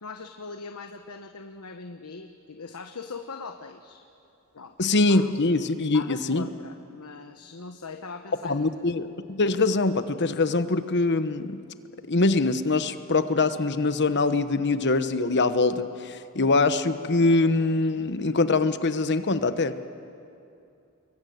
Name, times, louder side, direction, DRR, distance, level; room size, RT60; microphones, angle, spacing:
voice 1, 0.0-4.0 4.5-4.8 5.1-5.3 5.9-8.7, left 4 dB, 80° left, 6 dB, 1.1 m, -41 dB
voice 2, 4.8-6.4 8.4-11.6 12.1-19.9, left 3 dB, 50° left, 11 dB, 1.1 m, -23 dB
25.0 x 22.5 x 9.4 m, 2.6 s
head